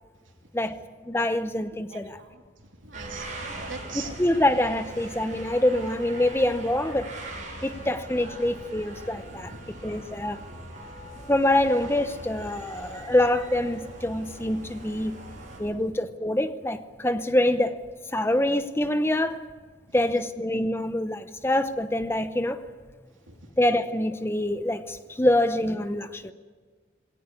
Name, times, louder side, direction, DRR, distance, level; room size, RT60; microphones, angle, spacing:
voice 1, 1.0-2.2 4.2-7.1 7.6-9.5 9.8-10.4 11.3-15.2 15.6-17.8 18.1-19.4 19.9-22.6 23.6-26.3, left 1 dB, 10° left, 10 dB, 0.7 m, -25 dB
voice 2, 1.9-4.2 7.6-7.9 9.3-9.8 11.1-11.2 15.6-15.7 19.9-20.2 23.3-23.4, right 4 dB, 90° right, 3 dB, 3.0 m, -44 dB
sound 1, 2.9-15.6, right 1 dB, 40° right, 7.5 m, -41 dB
21.0 x 18.0 x 9.8 m, 1.5 s
head